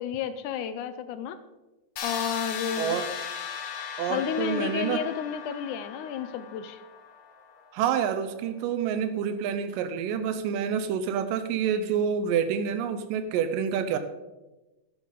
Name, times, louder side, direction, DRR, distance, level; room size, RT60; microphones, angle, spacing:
voice 1, 0.0-1.4 2.0-3.0 4.1-6.8, left 8 dB, 80° left, 11 dB, 1.9 m, -31 dB
sound 1, 2.0-7.8, left 7 dB, 60° left, 1.6 m, -37 dB
voice 2, 2.8-3.2 4.0-5.1 7.7-14.0, right 7 dB, 85° right, 10 dB, 2.3 m, -28 dB
11.0 x 11.0 x 3.8 m, 1.1 s
omnidirectional pair, 3.9 m